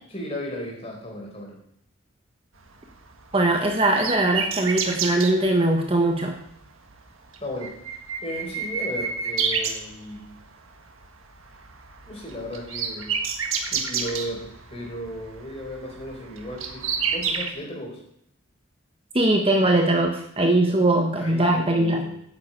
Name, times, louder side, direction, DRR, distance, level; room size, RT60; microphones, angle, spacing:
voice 1, 0.1-1.6 7.4-7.8 8.2-10.4 12.1-13.3 13.7-18.0 20.7-20.8 21.2-22.2, equal, 30° left, -1 dB, 4.4 m, -35 dB
sound 1, 2.8-5.4 6.3-6.5 6.9-7.0 7.3-10.4 10.8-11.1 11.4-17.5, right 6 dB, 85° right, 1.7 m, -29 dB
voice 2, 3.3-6.4 19.1-22.0, right 1 dB, 25° right, 3 dB, 1.3 m, -21 dB
9.8 x 7.8 x 8.7 m, 0.71 s
head